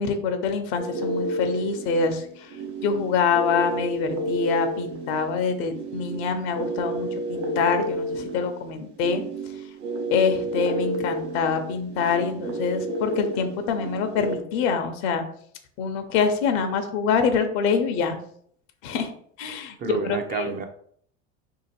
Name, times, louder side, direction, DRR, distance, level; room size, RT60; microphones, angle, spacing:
voice 1, 0.0-2.6 2.8-9.2 10.1-15.2 15.8-18.2 18.8-19.1 19.4-19.8 20.0-20.5, left 5 dB, 75° left, 0.7 m, -25 dB
sound 1, 0.8-14.4, right 1 dB, 90° right, 0.8 m, -31 dB
voice 2, 19.8-20.7, right 6 dB, 25° right, 0.4 m, -30 dB
2.8 x 2.5 x 4.2 m
supercardioid pair, 105°, 33 cm